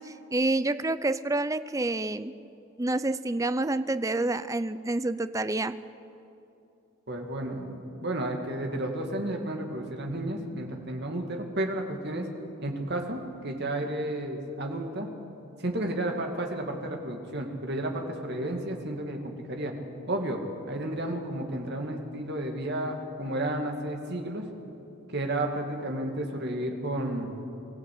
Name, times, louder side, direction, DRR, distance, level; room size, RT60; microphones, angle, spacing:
voice 1, 0.0-2.3 2.8-5.8, right 2 dB, 15° right, 13 dB, 0.5 m, -28 dB
voice 2, 7.1-12.3 12.6-15.1 15.6-19.7 20.1-20.4 20.7-24.5 25.1-27.3, right 1 dB, 50° right, 2 dB, 2.5 m, -32 dB
24.0 x 15.5 x 8.7 m, 2.8 s
head